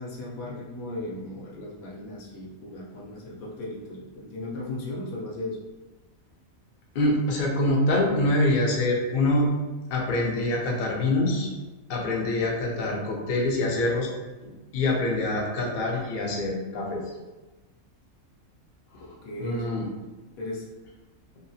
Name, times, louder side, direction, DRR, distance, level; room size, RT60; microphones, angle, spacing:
voice 1, 0.0-5.6 19.2-19.9 20.4-20.7, left 2 dB, 90° left, -4 dB, 1.2 m, -36 dB
voice 2, 6.9-9.5 9.9-11.5 11.9-14.1 14.7-17.0 18.9-19.9, left 2 dB, 55° left, -1 dB, 0.6 m, -25 dB
2.9 x 2.3 x 2.6 m, 1.2 s
omnidirectional pair, 1.5 m